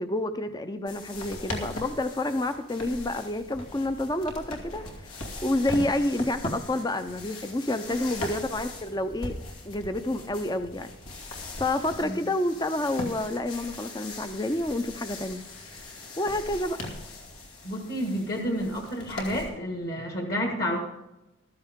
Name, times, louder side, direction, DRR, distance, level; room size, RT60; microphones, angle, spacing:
voice 1, 0.0-4.8 5.4-9.4 9.6-10.9 11.6-15.4 16.2-16.8, left 1 dB, 20° left, 10 dB, 0.5 m, -29 dB
sound 1, 0.9-19.5, left 2 dB, 90° left, 2.6 m, -40 dB
voice 2, 17.6-20.8, equal, 50° left, 2 dB, 1.7 m, -30 dB
14.5 x 13.0 x 3.6 m, 0.97 s
head